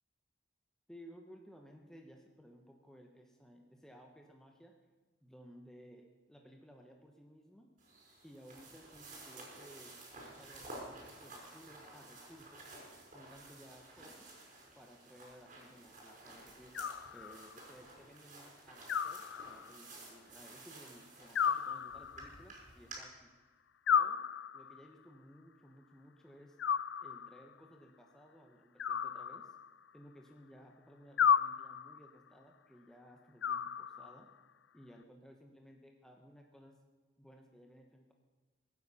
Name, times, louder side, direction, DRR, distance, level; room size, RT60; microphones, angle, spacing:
voice 1, 0.9-4.8 5.2-7.7 8.2-10.0 10.3-12.7 13.1-14.3 14.7-16.7 17.1-23.3 23.9-24.2 24.5-26.6 27.0-29.6 29.9-34.3 34.7-36.8 37.2-38.1, equal, 5° left, 2 dB, 1.2 m, -58 dB
sound 1, 7.8-23.0, right 2 dB, 45° right, 5.4 m, -53 dB
Animal, 16.7-17.6 18.9-19.9 21.4-22.4 23.9-24.9 26.6-27.5 28.8-29.9 31.2-32.1 33.4-34.3, left 7 dB, 80° left, 0.4 m, -33 dB
23.5 x 9.7 x 5.7 m, 1.3 s
head